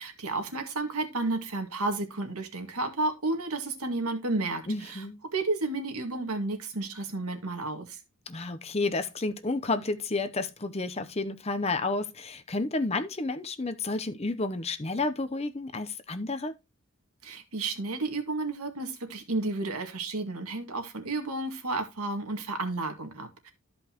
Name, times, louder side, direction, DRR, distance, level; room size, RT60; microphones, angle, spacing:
voice 1, 0.0-5.0 5.3-8.0 17.2-23.5, right 2 dB, 90° right, 2.0 m, -32 dB
voice 2, 4.7-5.2 8.3-16.5, left 3 dB, 30° left, 0.7 m, -31 dB
13.5 x 5.2 x 3.0 m
head